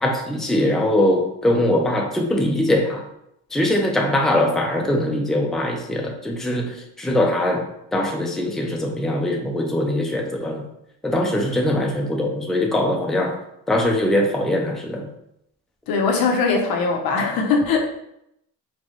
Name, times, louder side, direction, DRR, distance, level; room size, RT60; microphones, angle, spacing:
voice 1, 0.0-3.0 3.5-7.7 7.9-10.6 11.0-13.4 13.7-15.1, left 1 dB, ahead, 1 dB, 0.5 m, -21 dB
voice 2, 15.9-17.8, left 4 dB, 85° left, 2 dB, 0.8 m, -20 dB
4.3 x 2.3 x 3.0 m, 0.77 s
cardioid pair, 115°, 34 cm